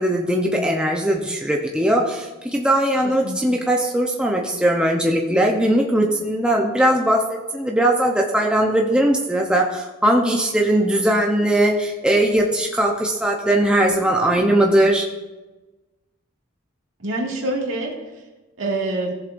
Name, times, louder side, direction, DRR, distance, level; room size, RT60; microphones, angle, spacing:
voice 1, 0.0-15.0, right 1 dB, 5° right, 0 dB, 0.7 m, -19 dB
voice 2, 3.0-3.6 17.0-17.9 18.6-19.1, right 2 dB, 70° right, -2 dB, 2.2 m, -26 dB
16.5 x 7.3 x 2.6 m, 1.1 s
head